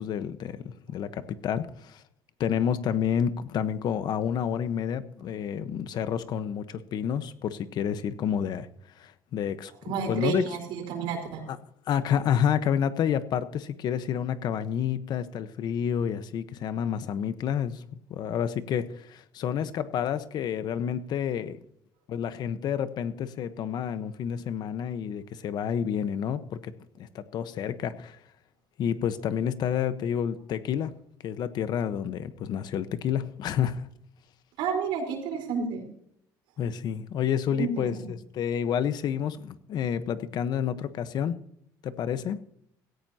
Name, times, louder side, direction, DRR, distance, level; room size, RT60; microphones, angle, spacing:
voice 1, 0.0-2.0 2.4-8.7 9.0-9.7 10.1-10.4 11.5-11.6 11.9-17.8 18.1-21.6 22.1-26.7 27.0-28.2 28.8-30.9 31.2-33.9 36.6-41.3 41.8-42.4, left 8 dB, 60° left, 12 dB, 1.2 m, -29 dB
voice 2, 9.8-11.4 34.6-35.8 37.5-38.1, right 6 dB, 85° right, 3 dB, 4.4 m, -30 dB
17.0 x 14.5 x 2.9 m, 0.70 s
cardioid pair, 115°, 8 cm